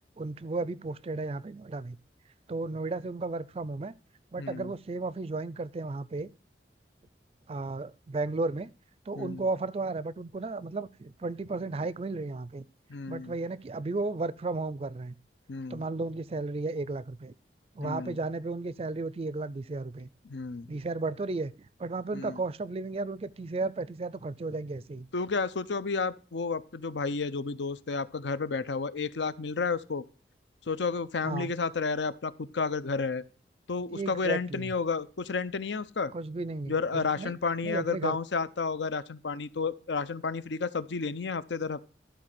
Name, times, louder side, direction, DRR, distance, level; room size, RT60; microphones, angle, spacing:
voice 1, 0.2-2.0 2.5-3.9 4.3-6.3 7.5-8.7 9.1-12.6 13.1-15.2 15.7-17.3 17.7-20.1 20.7-25.1 31.2-31.5 33.9-34.7 36.1-37.3 37.6-38.2, right 3 dB, 35° right, 0.4 m, -34 dB
voice 2, 4.4-4.7 9.2-9.4 12.9-13.3 15.5-15.8 17.8-18.2 20.2-20.7 22.1-22.4 25.1-30.0 30.7-33.2 33.7-36.1 36.7-41.9, left 4 dB, 85° left, 0.6 m, -31 dB
12.5 x 4.2 x 7.6 m
head